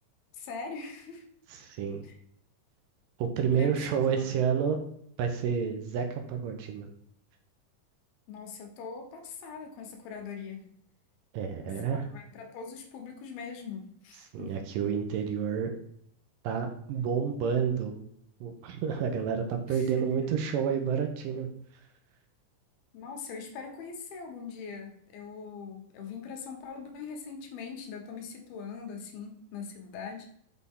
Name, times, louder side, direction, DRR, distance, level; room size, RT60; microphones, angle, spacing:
voice 1, 0.3-1.2 2.0-2.1 3.3-4.3 8.3-10.7 11.6-14.5 19.7-20.0 22.9-30.2, left 5 dB, 80° left, 3 dB, 3.0 m, -42 dB
voice 2, 1.5-2.0 3.2-4.8 5.2-6.9 11.3-12.1 14.3-15.7 16.4-18.0 18.4-21.5, right 7 dB, 80° right, 5 dB, 2.2 m, -29 dB
6.3 x 5.6 x 3.6 m, 0.68 s
omnidirectional pair, 4.3 m